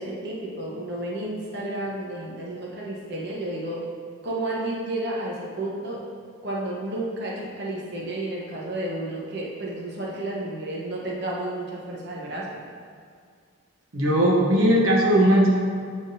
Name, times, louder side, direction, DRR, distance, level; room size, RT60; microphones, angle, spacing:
voice 1, 0.0-3.8 4.2-6.0 6.4-12.6, right 1 dB, 50° right, -4 dB, 1.0 m, -31 dB
voice 2, 13.9-15.5, equal, 80° right, -3 dB, 0.9 m, -18 dB
11.0 x 3.7 x 2.7 m, 2.1 s
head